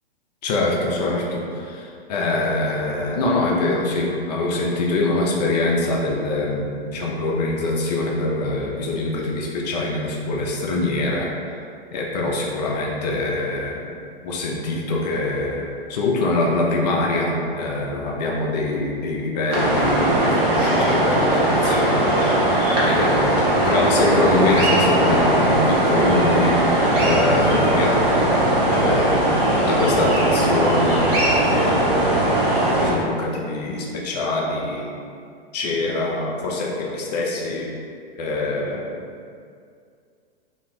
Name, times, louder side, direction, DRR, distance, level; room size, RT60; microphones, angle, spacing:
voice 1, 0.4-11.3 11.9-13.9 14.2-23.4 23.7-28.3 28.6-29.2 29.5-31.1 31.5-31.9 32.7-34.9 35.5-37.7 38.2-38.8, left 2 dB, 45° left, -2 dB, 0.5 m, -24 dB
sound 1, 19.5-32.9, right 1 dB, 20° right, 0.4 m, -19 dB
2.4 x 2.3 x 3.0 m, 2.3 s
figure-of-eight pair, 110°, 30 cm